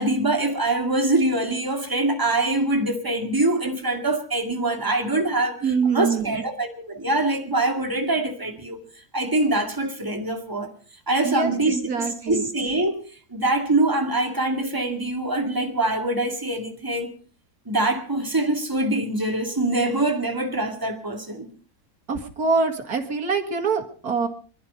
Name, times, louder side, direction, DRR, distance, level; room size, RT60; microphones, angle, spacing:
voice 1, 0.0-8.8 9.1-10.7 11.1-13.0 13.3-17.1 17.7-21.5, right 2 dB, 15° right, 2.2 m, -24 dB
voice 2, 5.6-6.4 11.2-12.5 22.1-24.3, right 5 dB, 85° right, 2.4 m, -24 dB
23.0 x 12.0 x 5.1 m
omnidirectional pair, 1.6 m